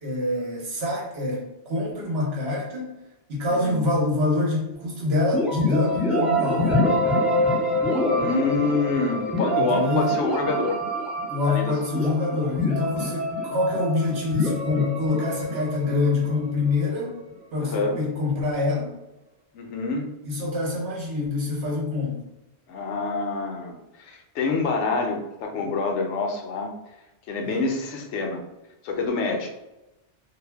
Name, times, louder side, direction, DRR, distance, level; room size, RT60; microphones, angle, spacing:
voice 1, 0.0-2.9 3.3-6.7 9.5-10.1 11.3-17.2 17.5-18.9 20.2-22.2 27.4-27.6, left 2 dB, 65° right, -2 dB, 1.0 m, -25 dB
sound 1, 5.3-17.0, equal, ahead, 0.7 m, -26 dB
voice 2, 8.1-10.8 11.4-11.7 17.6-18.0 19.5-20.1 22.7-26.7 27.3-28.4 28.8-29.5, left 3 dB, 85° left, 2 dB, 0.9 m, -26 dB
2.5 x 2.0 x 3.3 m, 0.95 s
omnidirectional pair, 1.2 m